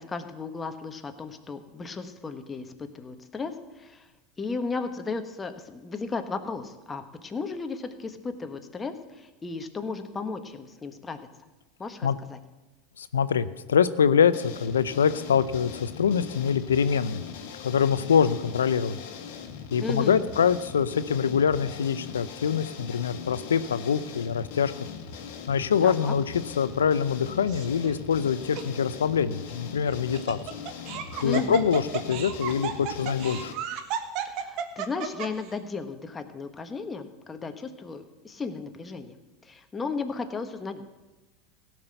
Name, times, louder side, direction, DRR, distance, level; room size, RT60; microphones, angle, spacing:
voice 1, 0.0-4.1 4.4-11.2 11.8-12.4 19.8-20.3 25.8-26.1 31.2-31.6 34.2-39.2 39.4-40.8, left 4 dB, 20° left, 7 dB, 1.4 m, -35 dB
voice 2, 13.0-17.2 17.6-19.0 19.7-24.7 25.5-30.4 31.2-31.8 32.1-33.5, left 7 dB, 85° left, 14 dB, 0.5 m, -24 dB
sound 1, 14.3-33.5, left 7 dB, 65° left, 1.5 m, -40 dB
Laughter, 27.5-27.9 28.5-28.6 29.9-35.5, right 9 dB, 55° right, 1.3 m, -33 dB
16.5 x 6.0 x 7.9 m, 1.1 s
hypercardioid pair, 85°, 0 cm